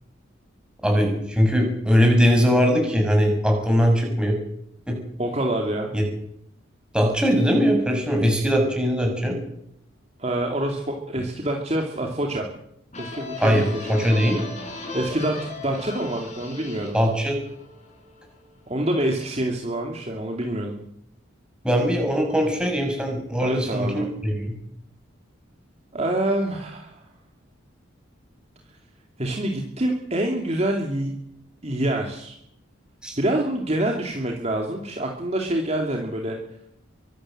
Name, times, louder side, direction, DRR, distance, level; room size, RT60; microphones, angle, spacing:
voice 1, 0.8-4.4 4.9-5.0 5.9-6.0 6.9-9.4 13.4-13.6 13.9-14.4 16.9-17.4 21.6-24.5 33.0-33.2, equal, 5° right, 1 dB, 6.8 m, -20 dB
voice 2, 5.2-5.9 10.2-12.5 13.0-14.0 14.9-17.0 18.7-20.8 23.3-24.1 25.9-27.0 29.2-31.1 31.6-32.3 33.2-36.4, right 1 dB, 30° right, 1 dB, 2.6 m, -26 dB
sound 1, 12.9-18.4, left 3 dB, 35° left, 7.6 m, -37 dB
24.0 x 16.5 x 7.8 m, 0.74 s
head